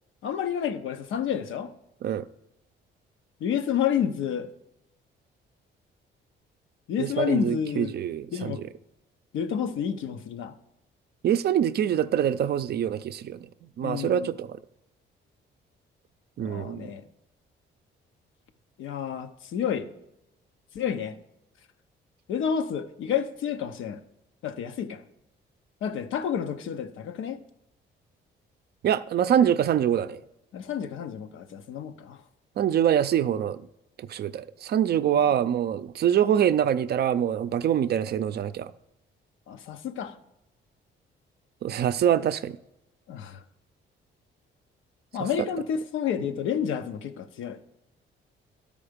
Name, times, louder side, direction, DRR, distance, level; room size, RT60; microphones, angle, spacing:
voice 1, 0.2-1.7 3.4-4.5 6.9-8.0 8.3-8.6 9.3-10.5 13.8-14.3 16.4-17.0 18.8-19.9 20.7-21.2 22.3-24.0 24.4-25.0 25.8-27.4 30.5-32.2 35.2-35.3 39.5-40.2 43.1-43.4 45.1-47.6, left 8 dB, 80° left, 0.7 m, -30 dB
voice 2, 7.0-8.5 11.2-13.5 13.8-14.6 16.4-16.9 28.8-30.2 32.6-33.6 34.0-38.7 41.6-42.6, right 9 dB, 55° right, 0.4 m, -25 dB
12.0 x 5.0 x 5.1 m
cardioid pair, 90°, 20 cm